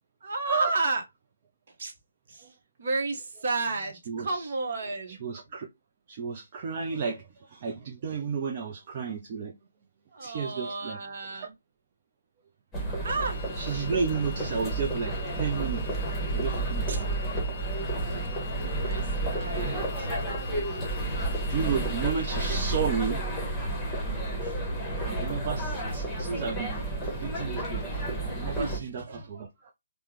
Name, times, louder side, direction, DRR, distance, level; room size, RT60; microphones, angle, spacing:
voice 1, 0.2-1.0 1.8-1.9 2.3-5.2 10.1-11.5 13.0-13.4 16.9-17.0 18.6-20.1 22.3-22.4 24.4-24.6 28.6-28.8 29.1-29.2, right 3 dB, 50° right, 0.9 m, -32 dB
voice 2, 4.1-4.5 5.1-5.7 6.1-9.6 10.2-11.0 11.3-11.5 13.6-16.0 16.3-17.1 18.0-18.4 18.7-18.9 19.5-20.1 20.6-21.1 21.5-23.5 24.9-29.7, right 6 dB, 35° right, 0.4 m, -33 dB
sound 1, 12.7-28.8, right 2 dB, 10° left, 1.0 m, -31 dB
sound 2, 13.3-22.5, left 5 dB, 40° left, 0.5 m, -45 dB
3.3 x 2.1 x 2.9 m
figure-of-eight pair, 145°, 0 cm